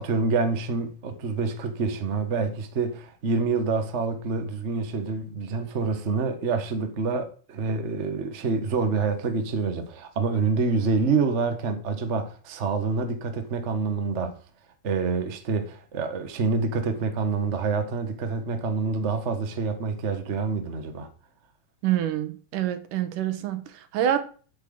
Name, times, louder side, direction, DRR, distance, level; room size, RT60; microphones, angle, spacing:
voice 1, 0.0-14.4 14.8-21.1, right 4 dB, 50° right, 0.8 m, -27 dB
voice 2, 21.8-24.2, right 11 dB, 90° right, 2.6 m, -26 dB
8.6 x 6.5 x 7.9 m
omnidirectional pair, 3.6 m